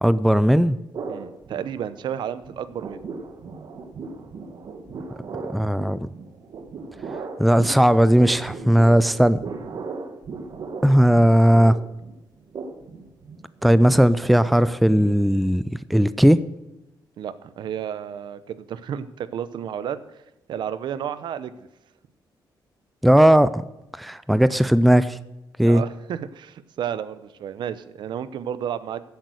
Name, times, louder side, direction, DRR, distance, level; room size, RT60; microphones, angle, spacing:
voice 1, 0.0-0.8 5.5-6.1 7.4-9.4 10.8-11.8 13.6-15.6 15.9-16.4 23.0-23.6 24.0-25.2 25.6-25.8, equal, ahead, 15 dB, 0.4 m, -17 dB
sound 1, 0.9-2.2 2.4-15.6, right 4 dB, 55° right, 1.4 m, -37 dB
voice 2, 1.1-3.0 17.2-20.0 20.5-21.7 25.6-29.0, right 9 dB, 70° right, 14 dB, 0.8 m, -32 dB
14.5 x 8.3 x 6.3 m, 0.95 s
wide cardioid pair, 160°, 8 cm